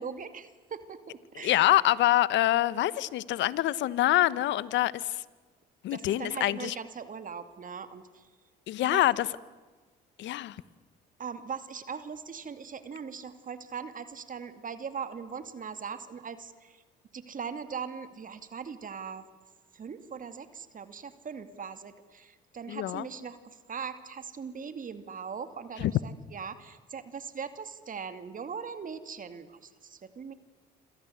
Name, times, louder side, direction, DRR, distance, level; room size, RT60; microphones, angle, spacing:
voice 1, 0.0-1.7 5.9-8.3 8.8-9.0 11.2-16.8 17.1-19.3 19.7-30.3, right 6 dB, 45° right, 11 dB, 2.5 m, -40 dB
voice 2, 1.3-5.2 5.8-6.8 8.7-9.3 10.2-10.6 22.7-23.1 25.8-25.9, left 14 dB, 70° left, 19 dB, 1.1 m, -25 dB
27.5 x 26.0 x 8.1 m, 1.3 s
supercardioid pair, 65°, 20 cm